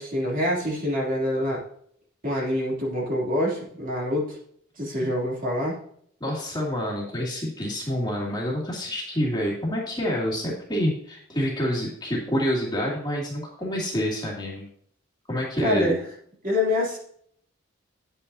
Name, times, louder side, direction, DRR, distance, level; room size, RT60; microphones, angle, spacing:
voice 1, 0.0-1.6 2.2-4.4 4.8-5.8 15.6-16.0 16.4-17.0, left 1 dB, 40° right, -3 dB, 3.0 m, -25 dB
voice 2, 6.2-14.6 15.3-16.0, equal, 20° left, -4 dB, 2.5 m, -27 dB
9.8 x 8.9 x 2.8 m, 0.64 s
head